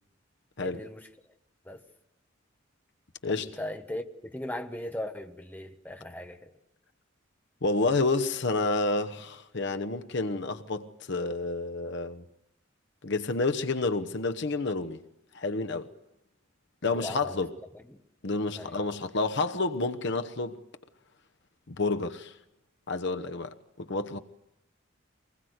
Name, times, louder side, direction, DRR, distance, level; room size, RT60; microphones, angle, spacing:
voice 1, 0.6-1.1 1.6-1.8 3.3-6.5 16.9-17.5 17.7-18.0 18.5-18.8, left 1 dB, 10° left, 1.2 m, -38 dB
voice 2, 7.6-12.2 13.0-15.0 15.3-15.9 16.8-17.5 18.2-20.6 21.7-22.3 22.9-24.2, left 3 dB, 60° left, 1.0 m, -29 dB
24.5 x 20.5 x 8.0 m
head